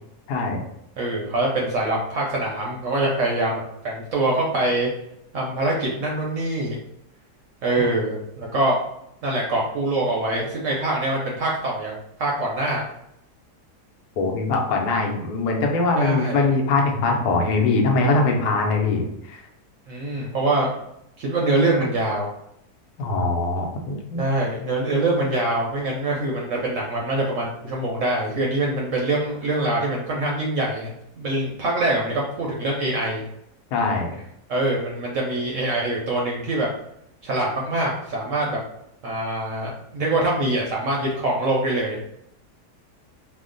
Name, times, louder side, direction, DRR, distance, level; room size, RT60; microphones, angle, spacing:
voice 1, 0.3-0.6 14.2-19.4 23.0-24.2 33.7-34.2, left 3 dB, 75° left, 1 dB, 1.2 m, -22 dB
voice 2, 1.0-4.9 5.3-6.8 7.6-8.8 9.2-11.9 12.2-12.8 16.0-16.4 19.9-20.7 21.2-22.3 24.2-30.9 31.2-33.2 34.5-36.7 37.2-38.6 39.0-42.0, right 2 dB, 65° right, -2 dB, 0.8 m, -24 dB
2.9 x 2.1 x 3.7 m, 0.78 s
omnidirectional pair, 1.8 m